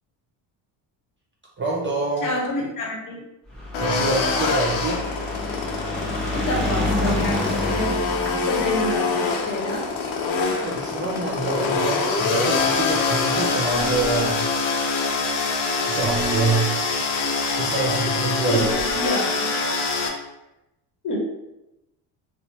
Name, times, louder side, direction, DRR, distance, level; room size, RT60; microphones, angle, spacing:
voice 1, 1.6-2.3 3.8-5.0 10.3-14.5 15.9-16.8 17.6-18.6, right 3 dB, 30° right, -3 dB, 0.4 m, -26 dB
voice 2, 2.2-3.2 6.3-8.0 8.4-9.9 18.5-18.6 19.0-19.5 21.0-21.2, left 1 dB, 40° left, -1 dB, 0.8 m, -27 dB
sound 1, 3.5-12.0 12.8-12.9 13.1-13.2 13.4-13.5, left 2 dB, ahead, 0.8 m, -29 dB
sound 2, 3.7-20.1, left 4 dB, 80° left, 0.6 m, -25 dB
sound 3, 13.7-14.3 16.0-16.6 18.4-19.1, right 5 dB, 60° right, 0.9 m, -33 dB
2.8 x 2.0 x 2.8 m, 0.93 s
cardioid pair, 90°, 47 cm